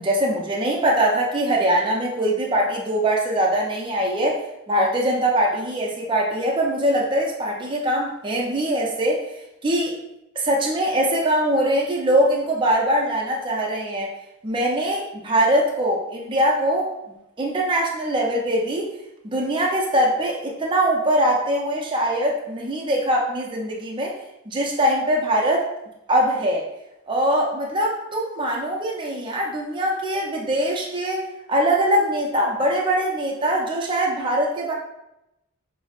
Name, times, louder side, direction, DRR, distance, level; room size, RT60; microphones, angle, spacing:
voice 1, 0.0-9.3 9.6-10.0 10.4-14.1 14.4-16.9 17.4-18.9 19.2-24.2 24.5-25.7 26.1-26.7 27.1-31.2 31.5-34.7, right 1 dB, 25° right, -1 dB, 0.4 m, -22 dB
5.7 x 2.0 x 2.4 m, 0.88 s
head